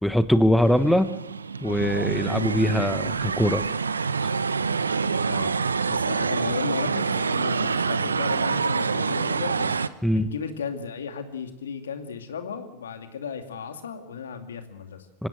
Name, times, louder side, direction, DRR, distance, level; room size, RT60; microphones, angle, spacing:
voice 1, 0.0-1.1 1.6-3.7 10.0-10.3 15.2-15.3, equal, ahead, 11 dB, 1.2 m, -22 dB
sound 1, 0.6-9.9, right 5 dB, 85° right, 0.8 m, -26 dB
voice 2, 5.2-5.6 5.9-9.7 10.1-15.1, left 6 dB, 75° left, 6 dB, 2.5 m, -34 dB
25.5 x 16.5 x 7.9 m, 0.94 s
figure-of-eight pair, 90°, 0 cm